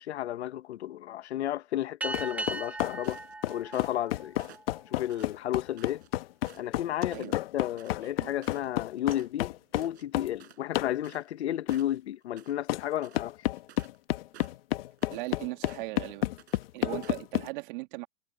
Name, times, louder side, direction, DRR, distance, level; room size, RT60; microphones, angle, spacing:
voice 1, 0.0-3.2 3.5-4.4 4.9-6.0 6.6-13.4, left 12 dB, 80° left, 1.3 m, -33 dB
sound 1, 2.0-4.9, right 2 dB, 5° right, 1.9 m, -38 dB
sound 2, 2.1-10.3 10.7-11.0 11.7-11.8 12.7-12.8 13.1-17.5, left 16 dB, 60° left, 1.2 m, -31 dB
sound 3, 2.4-3.4 3.7-4.1 4.4-6.1 6.4-6.8 7.1-7.3 7.6-11.4 11.7-12.6 12.9-14.0 14.3-15.3 15.7-16.0 16.4-16.6 17.0-17.3, right 12 dB, 75° right, 5.3 m, -55 dB
voice 2, 15.1-16.3 16.7-18.1, right 22 dB, 50° right, 2.4 m, -38 dB
supercardioid pair, 150°, 33 cm